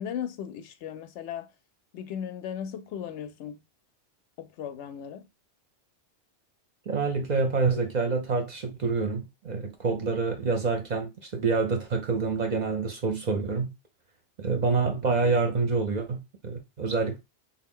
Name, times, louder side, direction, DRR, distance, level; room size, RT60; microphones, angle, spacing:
voice 1, 0.0-1.5 1.9-3.6 4.4-5.3, left 9 dB, 80° left, 0.9 m, -36 dB
voice 2, 6.9-13.7 14.4-17.2, right 4 dB, 50° right, 0.6 m, -27 dB
3.4 x 2.3 x 3.6 m
omnidirectional pair, 1.2 m